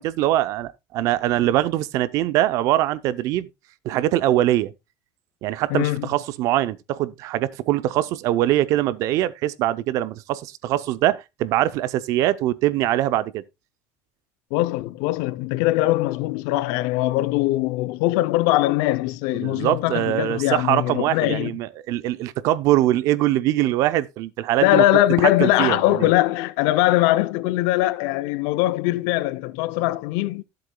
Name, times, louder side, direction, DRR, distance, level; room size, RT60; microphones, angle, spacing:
voice 1, 0.0-3.5 3.8-4.7 5.4-13.4 19.3-24.8 25.4-26.1, right 14 dB, 50° right, 0.5 m, -22 dB
voice 2, 5.7-6.1 14.5-21.5 24.6-30.4, left 16 dB, 70° left, 0.5 m, -21 dB
13.0 x 7.7 x 2.2 m
cardioid pair, 175°, 7 cm